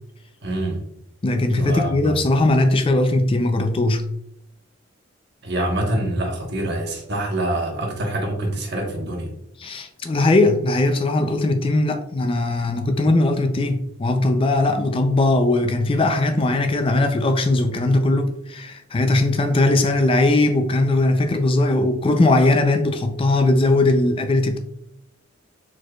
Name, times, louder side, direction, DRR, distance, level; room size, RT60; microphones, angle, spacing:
voice 1, 0.4-0.8 1.5-2.1 5.4-9.3, right 1 dB, 55° right, 1.1 m, -25 dB
voice 2, 1.2-4.1 9.6-24.6, left 2 dB, 25° left, 0.4 m, -19 dB
4.7 x 4.3 x 2.3 m
head